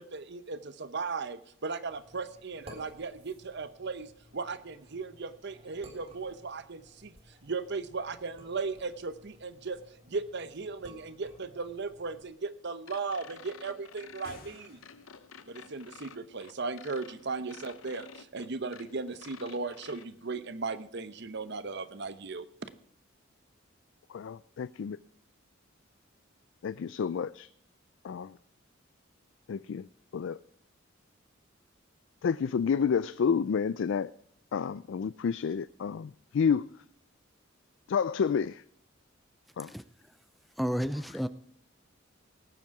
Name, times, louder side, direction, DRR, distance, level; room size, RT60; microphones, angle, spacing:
voice 1, 0.0-9.8 10.1-14.8 15.5-22.7, right 4 dB, 60° right, 0.9 m, -37 dB
sound 1, 1.9-12.3, equal, 30° right, 3.2 m, -55 dB
sound 2, 12.9-20.1, left 6 dB, 85° left, 0.8 m, -51 dB
sound 3, 14.1-15.4, left 2 dB, 50° left, 2.0 m, -53 dB
voice 2, 24.1-25.0 26.6-27.5 28.0-28.3 29.5-29.9 30.1-30.4 32.2-34.1 34.5-36.7 37.9-38.6 39.6-39.7, left 6 dB, 65° left, 0.3 m, -29 dB
voice 3, 39.6-40.1 40.6-41.3, equal, ahead, 0.4 m, -32 dB
18.0 x 7.5 x 4.7 m
head